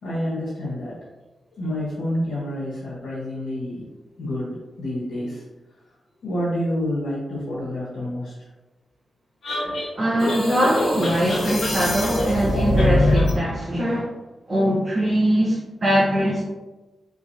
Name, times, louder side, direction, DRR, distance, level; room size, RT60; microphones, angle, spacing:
voice 1, 0.0-1.0 1.5-3.9 4.2-5.4 6.2-8.5 9.6-9.8, left 1 dB, 90° left, -9 dB, 1.4 m, -28 dB
sound 1, 9.4-13.4, left 1 dB, 70° left, 1.5 m, -23 dB
voice 2, 10.0-14.1 14.5-16.4, equal, 35° right, -6 dB, 0.9 m, -21 dB
3.8 x 3.8 x 2.7 m, 1.1 s
wide cardioid pair, 105°, 0 cm